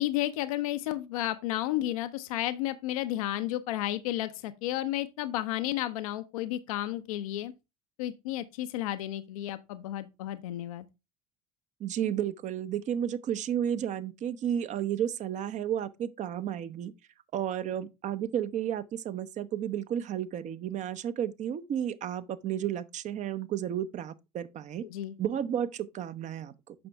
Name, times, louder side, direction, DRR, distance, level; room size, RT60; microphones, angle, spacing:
voice 1, 0.0-7.5 8.0-10.9 24.8-25.2, left 14 dB, 65° left, 0.6 m, -32 dB
voice 2, 11.8-16.9 17.3-24.9 25.2-26.7, right 10 dB, 40° right, 0.8 m, -32 dB
8.7 x 5.9 x 3.4 m
figure-of-eight pair, 65°, 20 cm